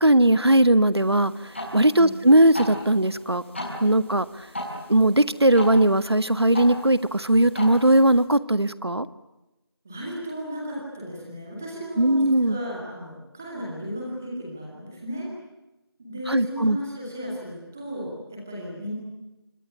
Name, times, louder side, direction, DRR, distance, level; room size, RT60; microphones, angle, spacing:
voice 1, 0.0-3.4 3.8-4.5 4.9-9.1 12.0-12.6 16.3-16.8, right 1 dB, 75° right, 15 dB, 1.7 m, -19 dB
sound 1, 0.9-8.2, left 1 dB, 25° left, 5.7 m, -38 dB
voice 2, 9.8-15.3 16.0-19.0, equal, 5° right, -3 dB, 2.5 m, -35 dB
26.0 x 25.0 x 8.4 m, 1.0 s
figure-of-eight pair, 175°, 13 cm